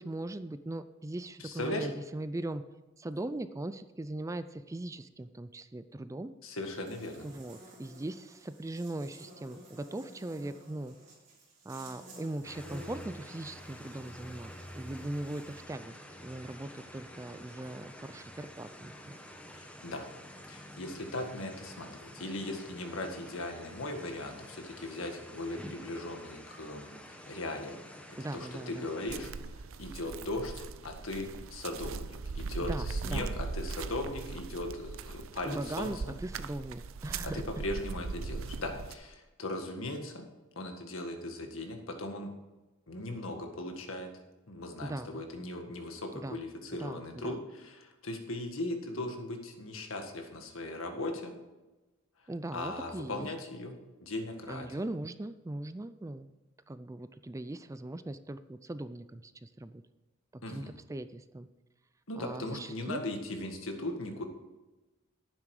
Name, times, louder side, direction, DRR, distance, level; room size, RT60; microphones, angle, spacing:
voice 1, 0.0-2.6 3.0-6.3 7.2-10.9 11.7-14.5 14.8-16.0 16.2-19.2 28.2-28.9 32.7-32.9 33.1-33.3 35.4-37.4 44.8-45.2 46.1-46.4 46.8-47.4 52.3-53.3 54.5-56.3 56.7-59.8 60.3-61.5 62.2-63.0, right 1 dB, 15° right, 13 dB, 0.4 m, -39 dB
voice 2, 1.4-1.9 6.4-7.3 19.6-20.1 20.5-27.8 28.3-29.3 29.8-36.1 37.2-40.2 40.6-42.3 42.9-44.1 44.5-51.3 52.5-54.8 60.4-60.7 62.1-64.2, left 2 dB, 80° left, 4 dB, 1.8 m, -38 dB
Buzz, 6.5-15.6, right 1 dB, 35° right, 3.9 m, -54 dB
sound 1, 12.4-29.3, equal, 5° left, 1.0 m, -49 dB
sound 2, 29.1-38.9, right 4 dB, 75° right, 0.6 m, -39 dB
11.5 x 9.7 x 4.9 m, 1.1 s
head